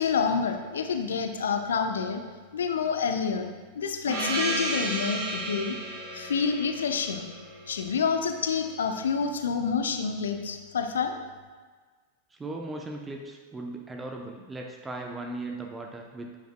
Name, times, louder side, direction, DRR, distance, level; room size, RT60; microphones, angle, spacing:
voice 1, 0.0-2.2 2.5-3.5 3.7-5.8 6.1-7.3 7.7-11.2, left 6 dB, 65° left, 6 dB, 0.7 m, -28 dB
Gong, 4.1-8.4, right 2 dB, 60° right, 2.6 m, -33 dB
voice 2, 12.3-16.4, right 2 dB, 15° right, 1 dB, 0.8 m, -38 dB
11.5 x 9.2 x 2.2 m, 1.5 s
figure-of-eight pair, 90°, 0 cm